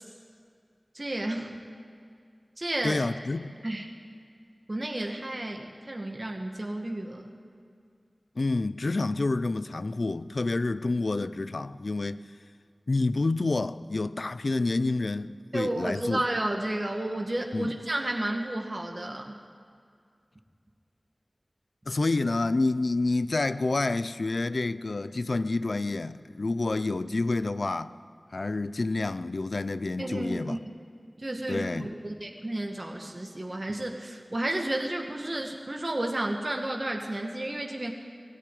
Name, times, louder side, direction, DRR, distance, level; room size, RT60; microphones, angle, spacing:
voice 1, 0.9-1.6 2.6-3.1 3.6-3.9 4.7-7.3 15.5-19.3 30.0-30.6 31.2-37.9, right 1 dB, 45° right, 2.1 m, -32 dB
voice 2, 2.8-3.5 8.4-12.2 12.9-16.2 17.5-17.7 21.9-27.9 28.3-30.6 31.5-31.9, left 3 dB, 75° left, 0.7 m, -28 dB
21.0 x 17.5 x 9.5 m
wide cardioid pair, 60°, 0 cm